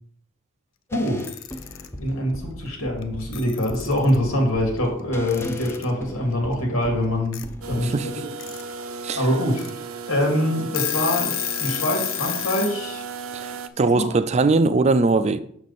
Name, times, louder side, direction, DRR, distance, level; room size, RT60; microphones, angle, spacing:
voice 1, 0.9-1.2 2.0-8.1 9.2-9.6 10.1-11.3 11.6-13.0 13.9-14.1, left 1 dB, 90° left, 2.4 m, -24 dB
sound 1, 0.9-7.8, left 1 dB, 10° left, 0.6 m, -37 dB
Alarm / Clock, 1.1-1.9 3.0-3.1 3.3-4.2 5.3-5.9 7.3-7.4 8.2-8.6 9.0-9.1 9.6-9.7 10.2-10.3 10.6-12.8, left 12 dB, 65° left, 0.6 m, -29 dB
sound 2, 7.6-13.7, right 4 dB, 80° right, 0.6 m, -35 dB
voice 2, 13.3-15.4, right 3 dB, 35° right, 0.4 m, -20 dB
6.4 x 6.3 x 4.1 m
head